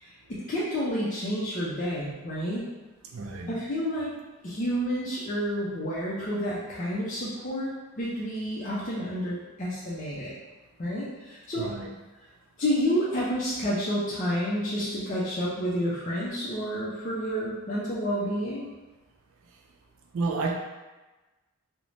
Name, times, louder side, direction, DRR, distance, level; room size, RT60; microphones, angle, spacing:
voice 1, 0.0-2.6 3.5-4.1 4.4-7.7 8.0-10.3 10.8-11.7 12.6-18.7, equal, 35° left, -8 dB, 0.4 m, -30 dB
voice 2, 3.1-3.6 11.6-11.9 20.1-20.5, right 3 dB, 65° right, 1 dB, 0.3 m, -30 dB
2.5 x 2.1 x 3.1 m, 1.2 s
head